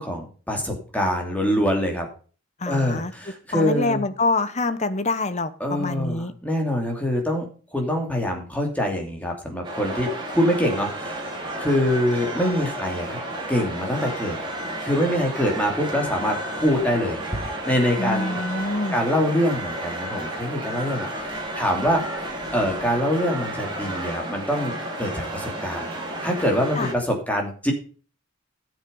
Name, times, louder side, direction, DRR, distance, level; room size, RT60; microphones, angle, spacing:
voice 1, 0.0-2.1 2.7-4.0 5.6-7.5 7.7-11.2 11.6-13.2 13.5-14.4 14.8-17.2 17.6-18.3 18.9-22.0 22.5-25.9 26.2-27.7, equal, 5° left, 1 dB, 2.9 m, -24 dB
voice 2, 2.6-3.1 3.5-6.3 18.0-19.0 26.8-26.9, left 2 dB, 35° left, 12 dB, 1.0 m, -26 dB
sound 1, 9.6-26.9, right 1 dB, 20° right, 3.6 m, -32 dB
13.0 x 7.4 x 5.5 m, 0.39 s
head